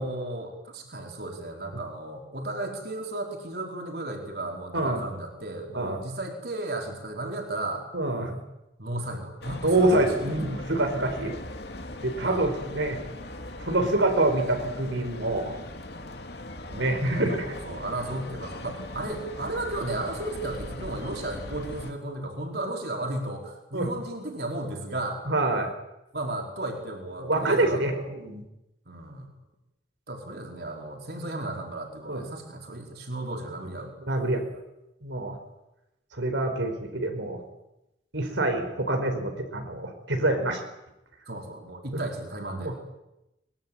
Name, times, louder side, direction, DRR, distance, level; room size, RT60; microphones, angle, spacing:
voice 1, 0.0-7.9 8.2-8.3 8.8-10.3 12.2-12.4 17.1-25.2 26.1-28.1 28.9-29.3 30.1-33.9 41.3-42.8, right 2 dB, 55° right, 2 dB, 5.0 m, -34 dB
voice 2, 7.9-8.3 9.6-11.3 12.0-13.0 13.6-15.5 16.7-17.5 23.7-23.9 25.3-25.7 27.2-28.4 32.1-32.2 34.1-34.4 35.0-35.4 36.1-37.4 38.1-40.6 42.6-42.7, right 2 dB, 90° right, 5 dB, 4.8 m, -26 dB
sound 1, 9.4-21.9, left 1 dB, 60° left, 2.7 m, -40 dB
24.0 x 22.5 x 9.1 m, 0.91 s
head